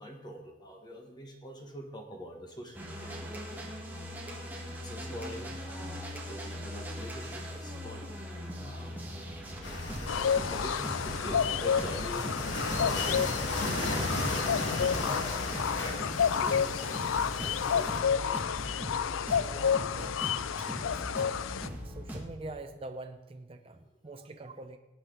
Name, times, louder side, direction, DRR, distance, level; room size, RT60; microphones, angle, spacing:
voice 1, 0.0-3.4 4.8-8.9 9.4-12.3 12.8-15.2 15.5-17.1 17.4-18.5 23.8-24.2, equal, 20° left, 3 dB, 1.5 m, -45 dB
sound 1, 2.7-22.3, equal, 10° right, 1.7 m, -40 dB
sound 2, 9.6-18.0, left 2 dB, 70° left, 2.1 m, -36 dB
sound 3, 10.1-21.7, left 7 dB, 90° left, 0.4 m, -30 dB
voice 2, 19.3-20.3 20.7-21.0 21.8-24.8, right 2 dB, 30° right, 5 dB, 0.6 m, -45 dB
18.5 x 9.3 x 3.9 m, 1.1 s
head